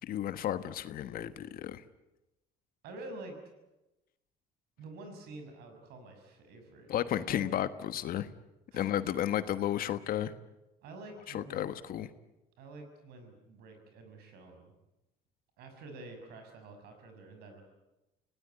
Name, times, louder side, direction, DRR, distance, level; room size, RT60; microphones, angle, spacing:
voice 1, 0.0-1.8 6.9-8.3 8.7-10.3 11.3-12.1, left 11 dB, 65° left, 12 dB, 1.4 m, -33 dB
voice 2, 2.8-3.4 4.8-6.9 7.2-7.6 8.7-8.9 10.8-11.9 12.6-14.7 15.6-17.6, right 2 dB, 85° right, 5 dB, 6.4 m, -48 dB
26.5 x 17.5 x 9.6 m, 0.97 s
cardioid pair, 100°, 16 cm